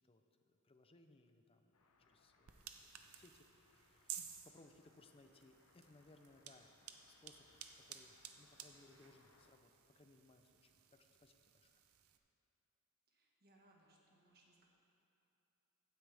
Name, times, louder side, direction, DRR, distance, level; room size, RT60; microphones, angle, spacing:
voice 1, 0.0-11.7, left 2 dB, 25° left, 7 dB, 0.6 m, -66 dB
sound 1, 1.7-9.5, left 3 dB, 75° left, 0.8 m, -73 dB
sound 2, 2.5-12.2, right 9 dB, 70° right, 0.7 m, -56 dB
voice 2, 13.1-14.7, right 1 dB, 45° right, -1 dB, 1.6 m, -70 dB
15.0 x 9.6 x 3.5 m, 2.9 s
head